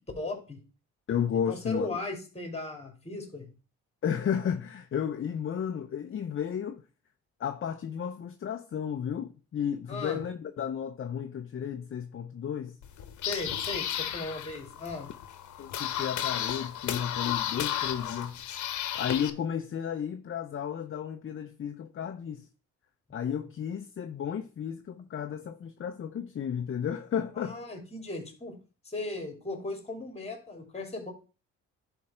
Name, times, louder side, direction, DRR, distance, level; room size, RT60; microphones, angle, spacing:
voice 1, 0.2-0.6 1.3-3.5 9.9-10.2 13.3-15.1 27.3-28.5 28.8-31.1, left 2 dB, 20° left, 3.0 m, -37 dB
voice 2, 1.1-1.9 4.0-6.8 7.4-12.8 15.6-18.4 18.9-22.5 23.1-27.6, left 8 dB, 45° left, 0.8 m, -33 dB
sound 1, 12.8-19.3, left 10 dB, 75° left, 1.1 m, -33 dB
10.5 x 4.6 x 4.4 m
cardioid pair, 90°, 30 cm